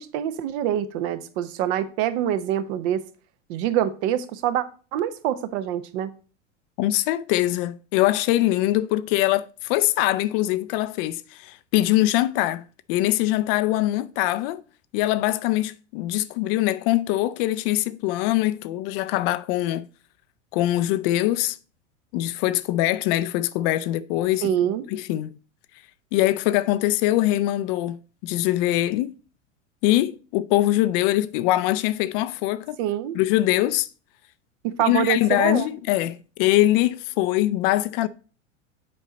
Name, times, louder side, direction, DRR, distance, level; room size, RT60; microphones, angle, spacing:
voice 1, 0.0-3.0 3.5-4.6 4.9-6.1 24.4-24.9 32.8-33.2 34.6-35.7, right 11 dB, 55° right, 0.8 m, -25 dB
voice 2, 6.8-14.6 14.9-19.9 20.5-21.6 22.1-24.5 24.9-25.3 26.1-29.1 29.8-32.8 33.1-33.9 34.8-38.1, left 15 dB, 50° left, 0.5 m, -23 dB
7.6 x 4.6 x 4.0 m
hypercardioid pair, 95°, 38 cm